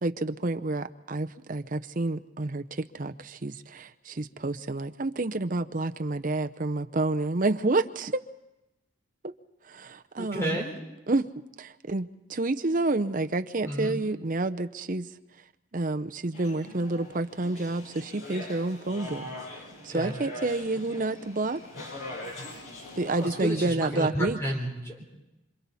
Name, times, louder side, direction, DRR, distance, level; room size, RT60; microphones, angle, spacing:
voice 1, 0.0-8.2 9.2-9.3 9.7-10.6 11.1-11.3 11.6-15.1 15.7-19.2 19.8-21.6 23.0-24.4, right 2 dB, 40° right, 8 dB, 0.7 m, -29 dB
voice 2, 10.2-10.8 13.6-14.0 19.8-20.2 23.2-25.0, equal, 15° left, -1 dB, 3.7 m, -32 dB
sound 1, 16.3-23.5, left 1 dB, 80° left, 7.1 m, -42 dB
27.0 x 26.0 x 4.2 m, 0.97 s
head